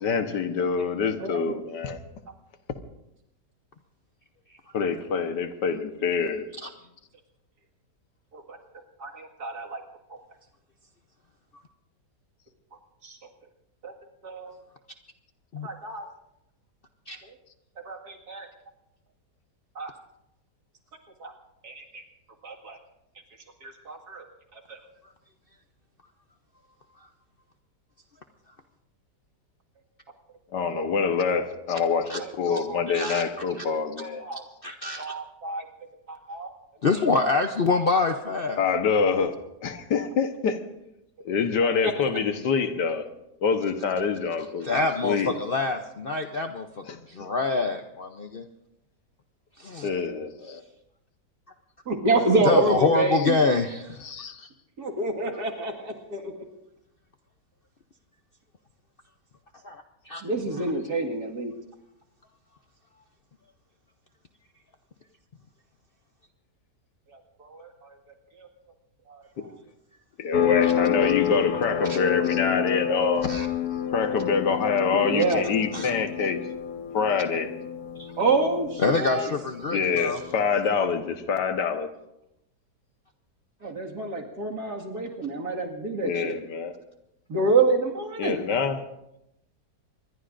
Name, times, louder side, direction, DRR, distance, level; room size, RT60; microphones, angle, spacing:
voice 1, 0.0-2.0 4.7-6.5 30.5-34.3 38.6-40.6 41.3-43.1 43.4-45.4 46.9-47.0 49.8-50.6 53.1-53.2 54.0-54.4 69.4-69.5 70.2-73.3 73.9-76.4 76.9-77.5 78.9-79.0 79.7-81.9 86.0-86.7 88.2-88.8, left 5 dB, 80° left, 8 dB, 1.8 m, -26 dB
voice 2, 1.2-1.5 8.3-8.6 9.0-9.8 10.1-10.2 13.0-13.2 13.8-13.9 14.2-14.6 15.6-16.1 17.2-17.3 17.9-18.5 19.8-19.9 21.2-21.3 21.6-22.0 22.4-22.8 23.6-24.2 24.5-24.8 30.7-30.9 32.2-33.2 34.0-34.4 35.0-35.7 36.1-36.5 37.2-37.3 37.7-37.9 39.7-40.1 41.6-41.9 51.9-53.6 54.8-56.4 60.2-61.5 67.4-68.0 68.4-68.5 69.1-69.3 74.9-75.4 78.2-79.3 83.6-86.4 87.3-88.4, right 3 dB, 65° right, 1 dB, 2.5 m, -28 dB
voice 3, 32.9-33.2 33.5-33.6 34.3-35.1 36.8-38.6 44.6-48.4 49.6-49.9 52.4-54.0 54.4-54.5 59.6-60.2 70.6-70.7 71.9-72.0 73.3-73.5 75.7-75.9 78.0-78.1 78.8-80.2, left 3 dB, 50° left, 5 dB, 0.7 m, -26 dB
sound 1, 70.3-80.7, left 9 dB, 65° left, 1.6 m, -29 dB
25.5 x 21.5 x 2.6 m, 0.84 s
omnidirectional pair, 1.8 m